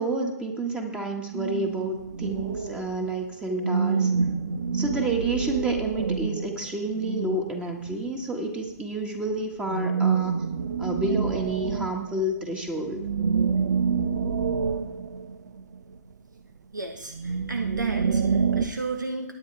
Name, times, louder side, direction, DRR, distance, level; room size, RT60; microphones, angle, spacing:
voice 1, 0.0-4.1 4.7-10.3 10.8-13.0, right 2 dB, 10° right, 2 dB, 1.5 m, -30 dB
sound 1, 1.3-3.1 3.5-7.9 9.7-12.4 12.7-15.9 16.9-18.6, right 5 dB, 70° right, 0.8 m, -27 dB
voice 2, 16.7-19.4, right 3 dB, 90° right, 5 dB, 1.2 m, -33 dB
17.5 x 9.7 x 3.3 m, 0.87 s
figure-of-eight pair, 130°, 10 cm